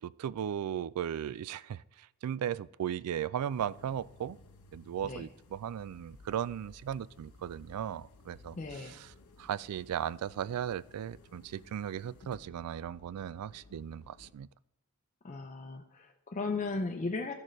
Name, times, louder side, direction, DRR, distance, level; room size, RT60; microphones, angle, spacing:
voice 1, 0.0-4.4 4.7-14.5, right 9 dB, 85° right, 0.3 m, -37 dB
sound 1, 3.5-14.3, left 2 dB, 85° left, 0.9 m, -57 dB
voice 2, 8.5-9.0 15.2-17.3, left 3 dB, 35° left, 0.5 m, -36 dB
13.5 x 6.5 x 3.2 m
head